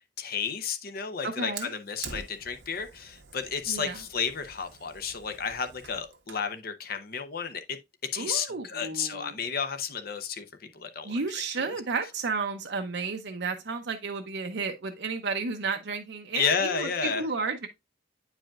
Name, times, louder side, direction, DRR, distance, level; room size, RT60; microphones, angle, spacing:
voice 1, 0.2-7.8 8.1-11.7 16.3-17.2, left 6 dB, 55° left, 0.8 m, -32 dB
voice 2, 1.2-1.7 3.7-4.0 8.2-9.3 11.0-17.7, right 4 dB, 70° right, 0.7 m, -32 dB
Fire, 1.6-6.5, right 5 dB, 85° right, 1.2 m, -46 dB
8.8 x 4.9 x 2.4 m
head